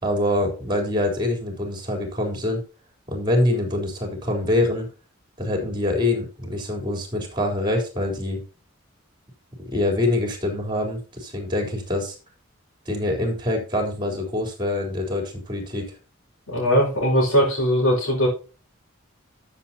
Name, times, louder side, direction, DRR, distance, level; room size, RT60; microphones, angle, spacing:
voice 1, 0.0-2.6 3.1-4.9 5.4-8.4 9.6-12.2 12.9-15.8, left 1 dB, 20° right, 3 dB, 4.0 m, -25 dB
voice 2, 16.5-18.3, equal, 90° left, -7 dB, 5.5 m, -20 dB
13.5 x 7.3 x 2.9 m, 0.34 s
head